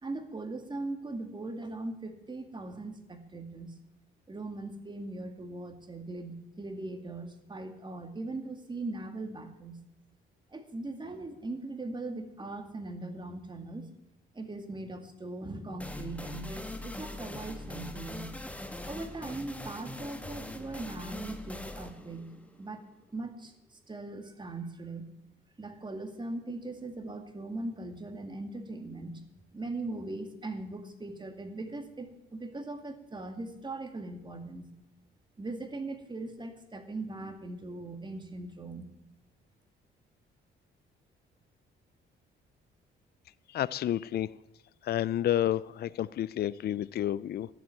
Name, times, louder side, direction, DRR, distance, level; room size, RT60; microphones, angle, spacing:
voice 1, 0.0-3.8 4.3-9.8 10.5-13.9 14.3-18.3 18.8-22.3 22.6-22.8 23.1-25.1 25.6-29.2 29.5-34.7 35.4-38.9, right 2 dB, 25° right, 6 dB, 2.1 m, -40 dB
sound 1, 15.8-23.3, left 1 dB, 5° left, 1.4 m, -42 dB
voice 2, 43.5-44.3 44.8-47.5, left 11 dB, 55° left, 19 dB, 0.4 m, -30 dB
12.5 x 7.5 x 9.5 m, 0.87 s
cardioid pair, 90°, 20 cm